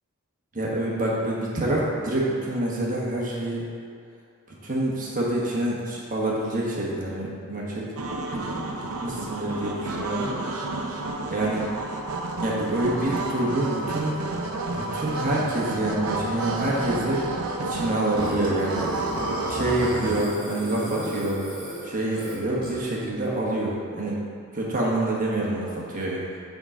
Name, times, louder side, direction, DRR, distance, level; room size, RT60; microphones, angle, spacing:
voice 1, 0.5-3.6 4.6-7.9 8.5-8.7 9.0-10.3 11.3-11.7 12.4-14.1 14.7-17.2 17.6-18.8 19.5-21.4 21.8-24.2 24.5-26.2, right 1 dB, 35° right, -4 dB, 1.3 m, -27 dB
sound 1, 8.0-20.2, right 2 dB, 75° right, 0.6 m, -31 dB
Burping eructation, 18.2-22.9, right 1 dB, 20° right, 1.2 m, -33 dB
8.4 x 3.8 x 4.9 m, 2.3 s
head